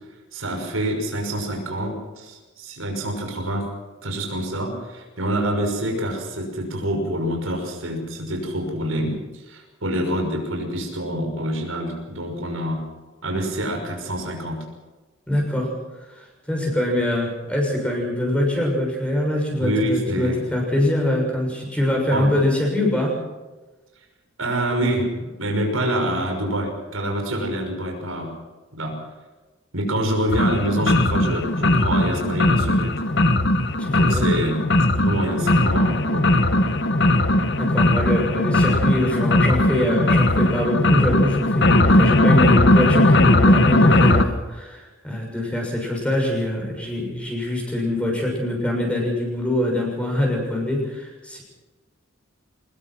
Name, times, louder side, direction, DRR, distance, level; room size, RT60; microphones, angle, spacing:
voice 1, 0.3-3.7 4.0-12.8 13.2-14.6 19.6-20.4 22.1-22.3 24.4-28.3 28.7-29.0 29.7-33.0 33.9-34.6 34.9-36.3, right 1 dB, 85° right, 2 dB, 5.9 m, -26 dB
voice 2, 15.3-15.7 16.2-23.2 33.8-34.2 37.6-51.4, left 1 dB, 5° left, 0 dB, 6.7 m, -24 dB
sound 1, 30.3-44.2, left 1 dB, 60° left, 1.4 m, -18 dB
24.5 x 21.0 x 6.1 m, 1.2 s
head